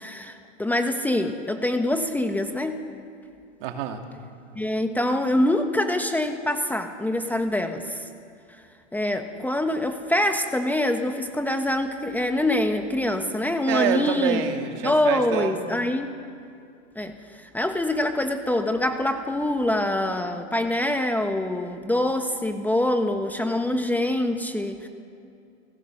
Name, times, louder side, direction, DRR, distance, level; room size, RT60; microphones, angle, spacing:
voice 1, 0.0-2.8 4.5-8.1 8.9-14.4 14.8-16.1 16.9-24.9, left 1 dB, 5° left, 6 dB, 1.2 m, -25 dB
voice 2, 3.6-4.0 13.7-15.6, right 9 dB, 50° right, 5 dB, 2.6 m, -27 dB
29.0 x 17.5 x 6.7 m, 2.5 s
hypercardioid pair, 125°, 36 cm